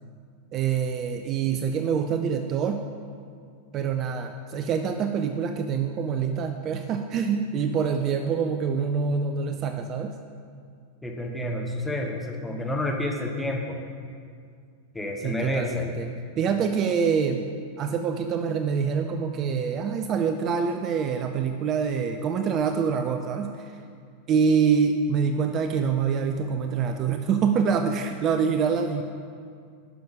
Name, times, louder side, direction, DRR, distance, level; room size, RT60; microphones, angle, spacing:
voice 1, 0.5-2.8 3.7-10.1 15.2-16.1 16.4-17.5 17.8-23.7 24.3-29.0, right 6 dB, 35° right, 6 dB, 0.4 m, -25 dB
voice 2, 11.0-13.8 14.9-15.9, left 1 dB, 5° left, 1 dB, 1.1 m, -29 dB
10.5 x 6.0 x 4.9 m, 2.2 s
figure-of-eight pair, 90°, 0 cm